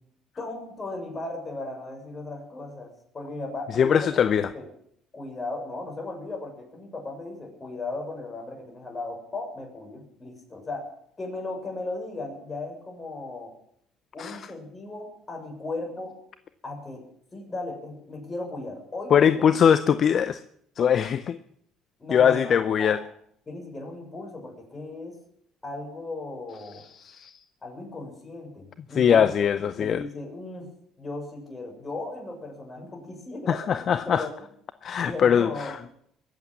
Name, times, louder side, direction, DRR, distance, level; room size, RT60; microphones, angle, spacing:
voice 1, 0.4-4.7 5.1-10.9 11.2-13.5 14.1-16.1 16.6-17.0 17.3-19.5 22.0-23.0 23.5-25.2 25.6-26.8 27.6-30.7 31.0-34.5 35.0-35.8, left 2 dB, 25° left, 6.7 m, -36 dB
voice 2, 3.8-4.5 14.2-14.4 19.1-20.4 20.8-21.4 22.1-23.0 27.0-27.3 29.0-30.0 33.5-34.3 34.8-35.8, left 8 dB, 50° left, 0.6 m, -21 dB
21.0 x 8.2 x 7.4 m
hypercardioid pair, 70°, 0 cm